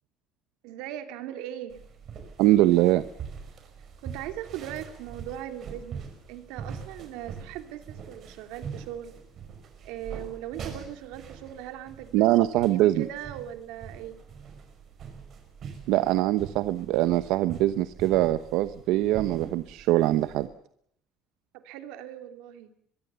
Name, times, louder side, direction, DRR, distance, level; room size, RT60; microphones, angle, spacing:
voice 1, 0.6-1.8 4.0-9.1 9.8-14.2 21.5-22.7, right 11 dB, 90° right, 8 dB, 3.0 m, -39 dB
sound 1, 1.7-20.5, right 6 dB, 35° right, 5.4 m, -43 dB
voice 2, 2.4-3.0 12.1-13.1 15.9-20.5, right 15 dB, 70° right, 12 dB, 1.0 m, -23 dB
23.5 x 23.0 x 7.0 m, 0.67 s
cardioid pair, 175°, 0 cm